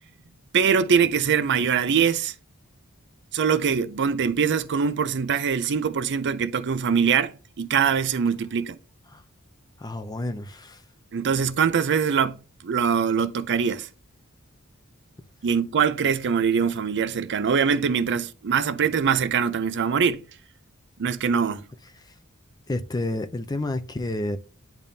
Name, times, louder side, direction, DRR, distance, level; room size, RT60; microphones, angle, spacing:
voice 1, 0.5-2.3 3.3-8.8 11.1-13.9 15.4-20.2 21.0-21.7, right 6 dB, 55° right, 0.5 m, -23 dB
voice 2, 9.8-10.8 22.0-22.1 22.7-24.4, left 1 dB, 20° left, 0.5 m, -30 dB
10.5 x 3.5 x 2.7 m
head